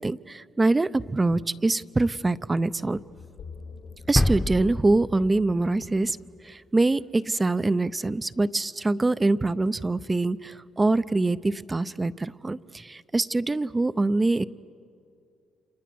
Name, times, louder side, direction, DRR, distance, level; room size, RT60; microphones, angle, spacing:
voice 1, 0.0-3.0 4.1-6.2 6.4-14.5, right 2 dB, 20° right, 15 dB, 0.5 m, -24 dB
sound 1, 2.9-7.1, left 4 dB, 80° left, 3.1 m, -46 dB
sound 2, 4.2-6.0 6.3-6.4, left 1 dB, 5° left, 0.9 m, -27 dB
30.0 x 27.0 x 6.2 m, 2.4 s
cardioid pair, 90°, 0 cm